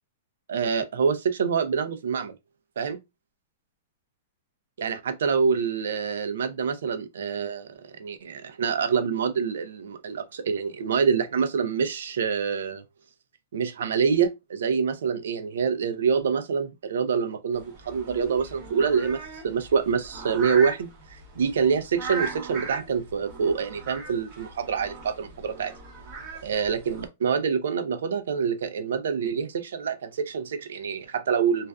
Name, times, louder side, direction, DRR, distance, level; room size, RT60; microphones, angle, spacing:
voice 1, 0.5-2.3 2.8-3.0 4.8-12.8 13.5-25.7 26.4-31.7, right 6 dB, 80° right, 0.5 m, -26 dB
sound 1, 17.5-27.1, right 4 dB, 30° right, 0.7 m, -39 dB
2.4 x 2.3 x 2.2 m
supercardioid pair, 170°, 0 cm